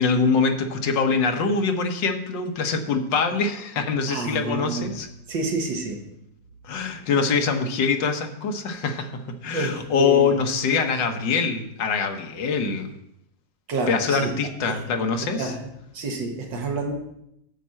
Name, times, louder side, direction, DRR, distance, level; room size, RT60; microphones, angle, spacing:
voice 1, 0.0-5.1 6.6-9.1 9.4-12.9 13.9-15.5, left 5 dB, 80° left, 6 dB, 1.6 m, -24 dB
voice 2, 4.1-4.9 5.3-6.0 9.5-10.3 13.7-14.3 14.7-14.8 15.4-15.6 15.9-16.9, right 3 dB, 85° right, 2 dB, 2.1 m, -28 dB
9.2 x 4.3 x 7.4 m, 0.80 s
omnidirectional pair, 2.0 m